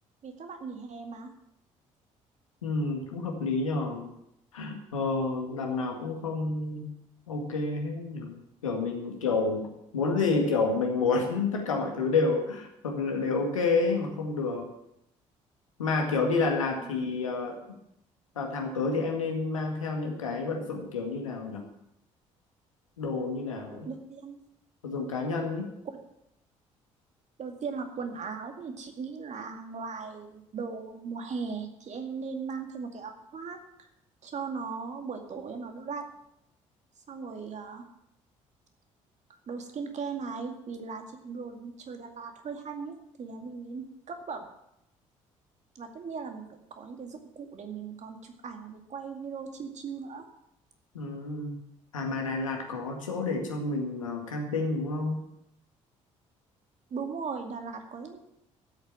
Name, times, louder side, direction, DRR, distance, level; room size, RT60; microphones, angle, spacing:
voice 1, 0.2-1.3 16.8-16.9 23.8-24.5 27.4-33.9 34.2-36.0 37.1-37.9 39.5-44.4 45.8-46.4 46.7-50.2 56.9-58.2, right 5 dB, 45° right, 4 dB, 2.3 m, -38 dB
voice 2, 2.6-4.1 4.5-6.9 7.3-8.4 8.6-9.7 9.9-14.7 15.8-17.6 18.4-21.6 23.0-23.9 24.8-25.7 50.9-51.6 51.9-55.2, left 3 dB, 85° left, 2 dB, 1.9 m, -29 dB
13.0 x 8.3 x 7.3 m, 0.80 s
figure-of-eight pair, 50°, 16 cm